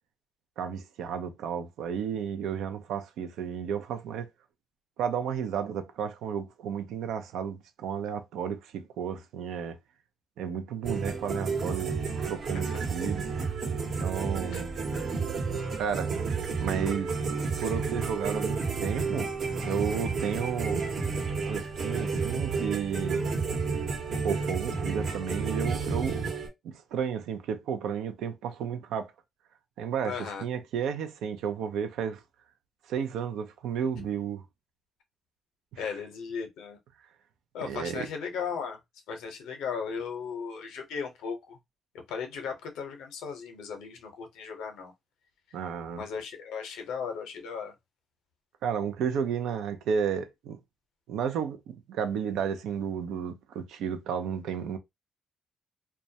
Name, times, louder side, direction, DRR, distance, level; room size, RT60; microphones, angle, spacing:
voice 1, 0.6-4.3 5.0-9.8 10.4-11.9 12.3-13.5 14.0-14.8 15.8-17.1 17.6-19.3 19.6-20.8 21.5-23.3 24.2-26.2 26.6-29.1 29.8-32.2 32.9-34.4 35.7-35.9 37.6-38.1 45.5-46.0 48.6-50.6 51.1-54.8, right 7 dB, 85° right, 0.4 m, -32 dB
sound 1, 10.8-26.5, right 4 dB, 65° right, 0.9 m, -31 dB
voice 2, 30.0-30.4 34.0-34.1 35.8-36.8 37.5-38.8 39.1-41.6 42.1-44.9 45.9-47.7, left 6 dB, 85° left, 0.7 m, -36 dB
2.2 x 2.1 x 2.7 m
supercardioid pair, 60°, 0 cm